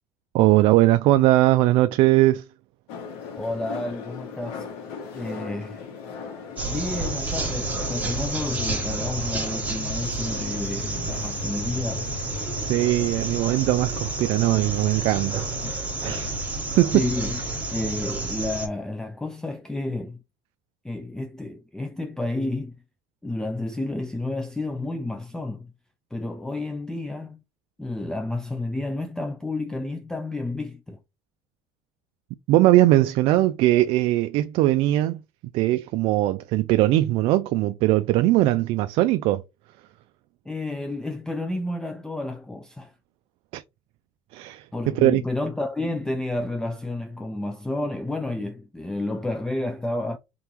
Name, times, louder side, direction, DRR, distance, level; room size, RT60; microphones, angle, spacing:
voice 1, 0.3-2.4 12.6-16.4 16.8-17.1 32.5-35.2 35.5-39.4 43.5-43.6 44.3-45.2, right 16 dB, 60° right, 0.3 m, -20 dB
sound 1, 2.9-17.8, left 6 dB, 90° left, 1.9 m, -40 dB
voice 2, 3.4-4.7 5.1-5.8 6.6-12.1 15.6-15.7 16.0-16.4 16.9-17.4 17.7-20.2 20.8-22.8 23.2-25.7 26.1-27.4 27.8-31.0 40.5-42.9 44.7-50.2, left 2 dB, 5° left, 0.4 m, -30 dB
sound 2, 6.6-18.7, right 2 dB, 15° right, 1.4 m, -30 dB
3.7 x 3.7 x 3.0 m
cardioid pair, 140°, 11 cm